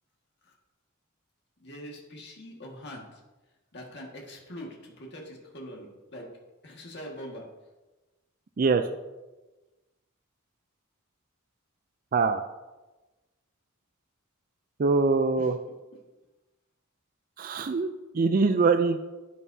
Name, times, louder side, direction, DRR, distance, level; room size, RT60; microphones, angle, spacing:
voice 1, 1.6-3.2 3.7-6.3 6.6-7.4 15.4-15.5, equal, 55° left, -1 dB, 1.8 m, -43 dB
voice 2, 8.6-8.9 12.1-12.4 14.8-15.6 17.4-19.0, right 4 dB, 45° right, 8 dB, 0.4 m, -23 dB
11.0 x 9.3 x 2.8 m, 1.1 s
head